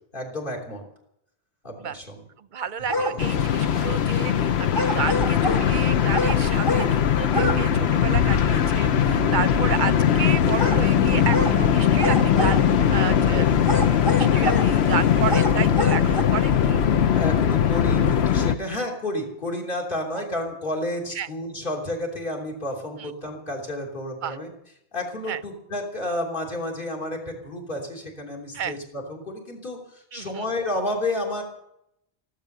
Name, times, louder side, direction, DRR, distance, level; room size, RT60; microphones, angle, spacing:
voice 1, 0.1-0.8 1.6-2.2 17.1-24.5 24.9-31.4, left 1 dB, 50° left, -1 dB, 3.5 m, -31 dB
voice 2, 2.4-13.6 14.2-16.8 20.1-20.2 21.1-21.3 23.0-23.1 24.2-24.4 25.3-25.4 28.5-28.8 30.1-30.5, right 8 dB, 50° right, 14 dB, 0.7 m, -31 dB
sound 1, 2.9-3.2 4.7-5.7 6.1-6.9 7.3-7.6 7.9-8.0 10.6-10.8 11.3-11.6 12.0-12.8 13.6-14.7 15.2-16.2, left 1 dB, 20° left, 1.3 m, -27 dB
sound 2, 3.2-18.5, left 9 dB, 70° left, 1.0 m, -20 dB
sound 3, 7.3-12.9, right 5 dB, 15° right, 0.9 m, -35 dB
15.5 x 12.0 x 6.7 m, 0.78 s
omnidirectional pair, 1.2 m